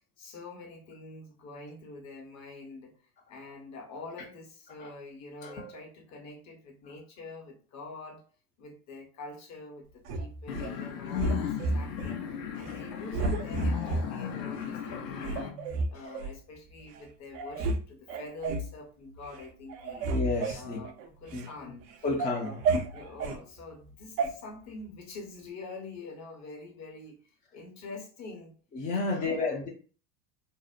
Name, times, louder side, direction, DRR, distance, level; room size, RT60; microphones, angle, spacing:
voice 1, 0.2-3.0 3.3-8.2 8.6-12.2 12.5-20.1 20.5-21.9 22.4-22.6 22.9-28.5 28.9-29.6, left 3 dB, 35° left, 0.9 m, -46 dB
voice 2, 5.4-5.8 16.0-16.2 20.1-20.8 21.3-21.5 22.0-22.6 28.7-29.7, left 3 dB, 20° left, 0.4 m, -31 dB
sound 1, 10.0-10.7 11.2-12.1 12.6-12.8 13.1-14.1 14.6-14.7 15.2-16.3 16.9-17.0 17.3-17.8 18.1-18.7 19.2-19.4 19.7-21.5 21.9-23.4 24.2-24.3, right 3 dB, 65° right, 0.6 m, -31 dB
sound 2, 10.5-15.5, left 8 dB, 85° left, 0.7 m, -36 dB
2.7 x 2.0 x 2.4 m
hypercardioid pair, 95°, 48 cm